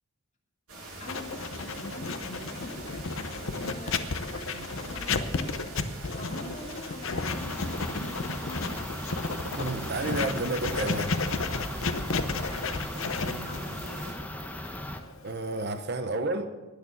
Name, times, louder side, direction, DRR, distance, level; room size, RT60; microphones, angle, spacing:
sound 1, 0.7-14.1, right 2 dB, 70° right, 4.9 m, -43 dB
voice 1, 1.0-4.0 4.3-5.6 6.1-8.9 11.9-14.2, left 1 dB, 30° left, -1 dB, 2.7 m, -44 dB
Writing, 1.1-15.8, left 4 dB, 65° left, 0.8 m, -33 dB
sound 2, 7.3-15.0, left 1 dB, 5° left, 0.8 m, -38 dB
voice 2, 9.6-11.2 15.2-16.5, right 2 dB, 45° right, 9 dB, 0.8 m, -31 dB
19.5 x 6.6 x 7.1 m, 1.2 s
head